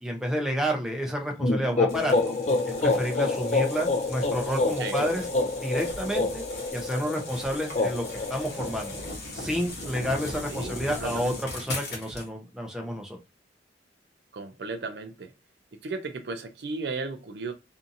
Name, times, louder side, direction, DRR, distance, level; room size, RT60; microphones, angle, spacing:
voice 1, 0.0-2.3 2.7-5.3 5.6-6.4 6.7-8.9 9.3-13.2, equal, 5° right, 0.6 m, -30 dB
sound 1, 1.4-9.1, left 3 dB, 40° left, 0.4 m, -27 dB
sound 2, 1.9-12.3, left 2 dB, 60° left, 1.0 m, -39 dB
voice 2, 10.5-11.4 14.3-15.3 15.8-17.5, right 3 dB, 65° right, 0.5 m, -35 dB
2.7 x 2.5 x 2.6 m
head